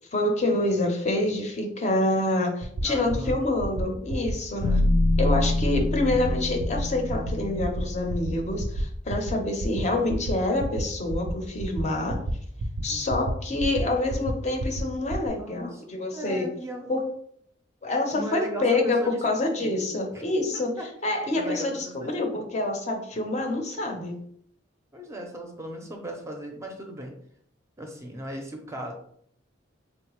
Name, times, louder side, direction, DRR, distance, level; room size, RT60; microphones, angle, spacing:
voice 1, 0.1-4.7 5.2-12.2 12.8-16.5 16.9-17.0 17.8-20.7 21.0-24.2, left 2 dB, 40° left, 3 dB, 0.5 m, -27 dB
sound 1, 2.6-2.8 3.1-3.3 3.6-3.8 4.1-4.3 4.6-4.8 5.1-5.3 5.6-5.8 6.1-6.3 6.6-6.8 7.1-7.3 7.6-7.8 8.1-8.3 8.6-8.8 9.1-9.3 9.6-9.8 10.1-10.3 10.6-10.8 11.1-11.3 11.6-11.8 12.1-12.3 12.6-12.8 13.1-13.3 13.6-13.8 14.1-14.3 14.6-14.8 15.1-15.3, right 2 dB, 75° right, 0.4 m, -30 dB
voice 2, 2.8-3.4 4.6-4.8 12.9-13.3 15.4-15.8 16.1-16.9 18.1-19.8 20.5-20.9 21.3-22.4 24.9-27.1 27.8-28.9, equal, 15° right, 2 dB, 0.5 m, -37 dB
sound 2, 4.6-8.8, left 1 dB, 90° left, 0.4 m, -26 dB
3.7 x 2.1 x 2.9 m, 0.66 s
head